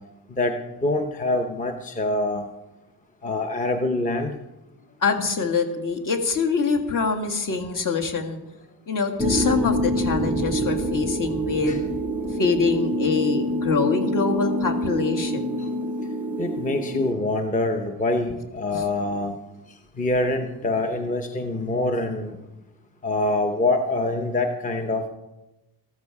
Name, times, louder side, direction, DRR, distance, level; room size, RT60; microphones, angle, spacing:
voice 1, 0.8-2.5 3.2-4.3 11.7-11.8 16.4-19.4 20.0-22.4 23.0-25.1, left 2 dB, 20° left, 5 dB, 0.8 m, -25 dB
voice 2, 5.0-8.4 8.9-11.8 12.4-15.5 18.7-18.8, left 4 dB, 45° left, 4 dB, 2.0 m, -24 dB
sound 1, 9.2-17.1, equal, 5° right, 0.4 m, -26 dB
14.0 x 14.0 x 4.8 m, 1.0 s
cardioid pair, 165°, 43 cm